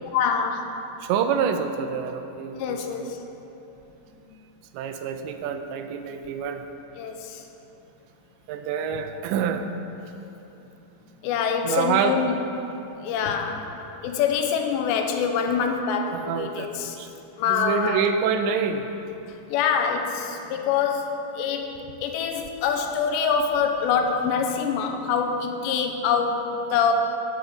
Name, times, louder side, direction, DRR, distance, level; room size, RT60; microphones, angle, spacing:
voice 1, 0.1-0.8 2.6-3.2 7.0-7.4 11.2-12.4 13.0-13.7 14.0-17.0 17.4-18.0 19.5-21.7 22.0-26.9, left 6 dB, 85° left, 4 dB, 2.9 m, -25 dB
voice 2, 1.0-3.1 4.7-6.6 8.5-9.7 11.6-12.2 16.1-17.1 17.5-18.9, right 7 dB, 85° right, 7 dB, 2.9 m, -27 dB
10.5 x 7.7 x 6.9 m, 2.9 s
omnidirectional pair, 5.1 m